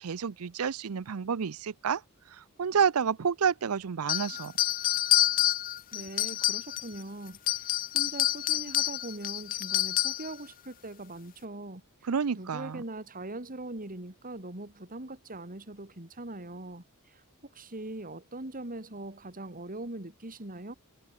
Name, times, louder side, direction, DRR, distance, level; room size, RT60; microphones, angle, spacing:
voice 1, 0.0-2.0 2.3-4.5 12.1-12.8, right 6 dB, 70° right, 0.5 m, -29 dB
sound 1, 4.1-7.0 7.3-10.3, left 13 dB, 40° left, 0.4 m, -28 dB
voice 2, 5.9-11.8 12.3-17.2 17.5-20.7, right 2 dB, 40° right, 3.1 m, -41 dB
head